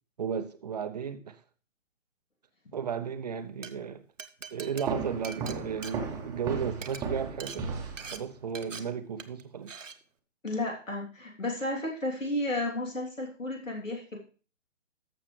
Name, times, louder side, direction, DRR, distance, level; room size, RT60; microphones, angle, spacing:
voice 1, 0.2-1.4 2.7-4.0 4.5-7.8 8.1-9.7, right 7 dB, 35° right, 0.6 m, -34 dB
Glass, 3.4-3.7 4.2-6.5 6.7-7.0 7.4-7.6 8.0-8.2 8.6-8.8 9.2-9.4 9.7-10.0, right 5 dB, 75° right, 1.0 m, -42 dB
sound 1, 4.9-8.6, right 5 dB, 10° right, 0.9 m, -36 dB
voice 2, 10.4-14.2, left 1 dB, 85° left, 3.3 m, -32 dB
14.0 x 6.3 x 3.3 m
figure-of-eight pair, 135°, 38 cm